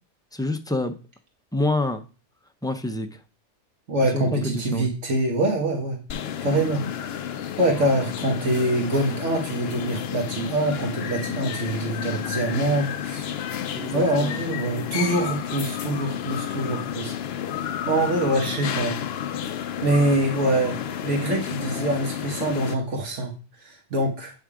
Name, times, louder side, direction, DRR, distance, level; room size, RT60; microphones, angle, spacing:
voice 1, 0.3-1.0 1.5-2.0 2.6-3.2 4.1-4.9 12.1-12.4 13.7-14.4, left 2 dB, 5° left, 7 dB, 0.4 m, -27 dB
voice 2, 3.9-6.0 6.4-6.8 7.6-13.3 13.9-17.1 17.9-19.0 19.8-20.8 21.0-23.3 23.6-24.3, right 1 dB, 85° right, 0 dB, 1.7 m, -24 dB
sound 1, 6.1-22.7, left 9 dB, 65° left, 0.8 m, -31 dB
9.2 x 3.5 x 4.9 m, 0.34 s
omnidirectional pair, 1.2 m